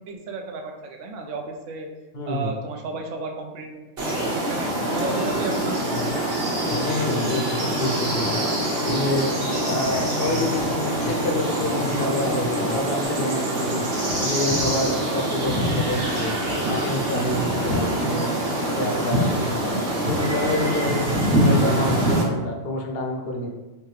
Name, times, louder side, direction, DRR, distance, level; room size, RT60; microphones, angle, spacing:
voice 1, 0.1-1.9 2.3-3.7 4.2-6.0 7.7-7.8 16.6-16.7 19.7-19.8, right 3 dB, 75° right, 2 dB, 0.9 m, -33 dB
voice 2, 2.1-2.5 6.8-9.3 9.6-13.8 14.2-16.3 16.7-19.8 20.0-23.5, left 1 dB, 60° left, 1 dB, 0.8 m, -28 dB
sound 1, 4.0-22.2, right 1 dB, 50° right, 1.1 m, -24 dB
Plucked string instrument, 4.8-13.1, left 3 dB, 80° left, 1.1 m, -35 dB
3.3 x 3.3 x 3.2 m, 1.1 s
omnidirectional pair, 1.3 m